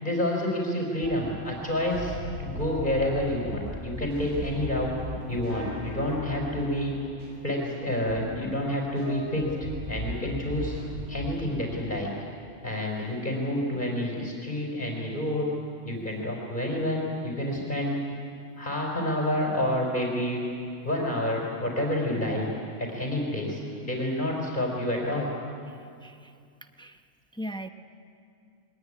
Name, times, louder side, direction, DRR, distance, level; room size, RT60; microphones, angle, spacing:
voice 1, 0.0-4.9 5.3-6.9 7.4-9.5 9.9-10.7 11.1-12.1 12.6-15.5 15.8-18.0 18.6-20.4 20.8-22.5 22.9-25.3, left 1 dB, 40° left, -1 dB, 4.2 m, -28 dB
sound 1, 1.0-11.4, left 1 dB, 70° right, 8.1 m, -38 dB
voice 2, 26.0-26.3 26.8-27.0 27.3-27.7, equal, 5° left, 7 dB, 0.7 m, -37 dB
22.5 x 19.5 x 9.7 m, 2.4 s
omnidirectional pair, 1.3 m